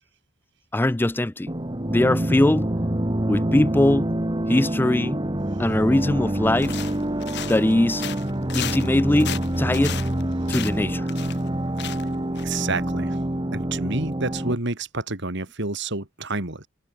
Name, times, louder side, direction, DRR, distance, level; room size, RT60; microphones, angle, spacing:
voice 1, 0.7-1.5 1.9-2.7 3.3-4.1 4.5-5.2 5.6-6.8 7.4-8.1 8.5-10.0 10.5-11.1, left 1 dB, 10° left, 0.4 m, -21 dB
sound 1, 1.5-14.5, right 1 dB, 20° right, 1.3 m, -26 dB
sound 2, 6.6-7.7 8.0-11.5 11.8-12.1 12.4-12.5, left 10 dB, 55° left, 1.3 m, -34 dB
voice 2, 12.4-13.2 13.5-16.7, right 3 dB, 55° right, 3.1 m, -29 dB
head